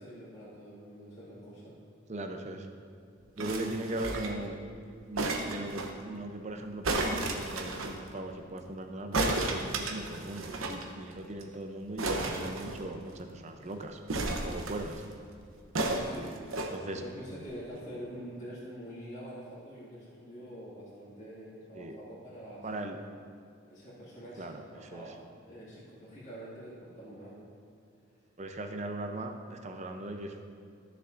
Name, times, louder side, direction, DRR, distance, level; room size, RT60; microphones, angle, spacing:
voice 1, 0.0-1.8 16.0-22.9 23.7-25.1 25.4-27.5, equal, 35° left, -11 dB, 2.1 m, -46 dB
voice 2, 2.1-2.7 3.4-4.6 5.1-15.0 16.7-17.0 21.7-22.0 22.6-23.0 24.4-25.0 28.4-30.4, right 2 dB, 35° right, 5 dB, 0.6 m, -39 dB
sound 1, 3.4-4.5 5.2-5.9 6.8-7.9 9.1-10.8 11.1-11.2 11.4-11.6 12.0-13.2 14.1-15.0 15.7-16.7 17.4-17.5, right 2 dB, 85° right, 0.9 m, -32 dB
14.0 x 6.7 x 2.6 m, 2.4 s
head